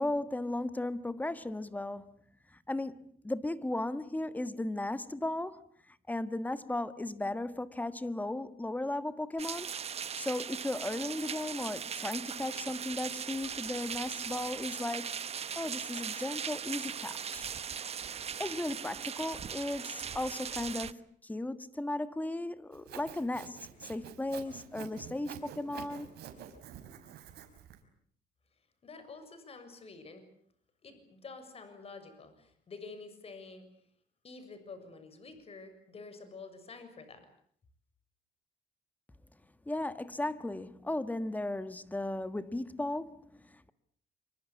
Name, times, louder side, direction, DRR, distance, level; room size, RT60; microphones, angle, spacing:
voice 1, 0.0-2.1 2.5-5.6 5.9-9.7 10.1-15.1 15.5-17.5 18.4-26.1 39.6-43.7, left 1 dB, 10° left, 1.6 m, -36 dB
sound 1, 9.4-20.9, right 7 dB, 35° right, 1.1 m, -39 dB
Sawing, 22.7-27.8, right 9 dB, 70° right, 5.0 m, -48 dB
voice 2, 28.8-30.2 30.8-33.7 34.2-37.3, left 4 dB, 35° left, 6.9 m, -48 dB
27.0 x 24.5 x 8.5 m
cardioid pair, 110°, 17 cm